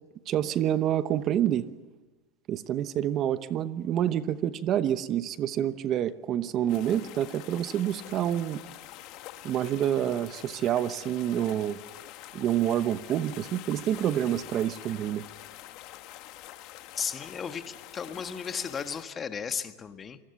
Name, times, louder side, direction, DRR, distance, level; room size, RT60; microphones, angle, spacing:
voice 1, 0.3-1.7 2.5-8.6 9.4-11.8 12.3-15.2, right 11 dB, 40° right, 13 dB, 1.0 m, -27 dB
sound 1, 6.7-19.0, left 14 dB, 55° left, 1.7 m, -46 dB
voice 2, 16.9-20.2, left 6 dB, 25° left, 9 dB, 1.5 m, -35 dB
26.5 x 19.5 x 7.1 m, 1.2 s
supercardioid pair, 115°, 0 cm